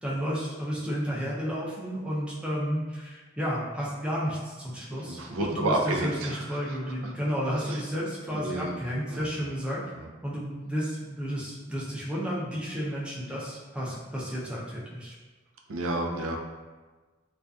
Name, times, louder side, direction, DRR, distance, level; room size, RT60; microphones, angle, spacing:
voice 1, 0.0-9.8 10.2-15.1, equal, 5° right, -6 dB, 0.4 m, -32 dB
voice 2, 4.9-7.1 7.7-7.8 8.3-8.8 9.1-9.5 9.9-10.1 15.7-16.4, right 2 dB, 90° right, 1 dB, 0.4 m, -31 dB
2.5 x 2.3 x 2.3 m, 1.3 s
head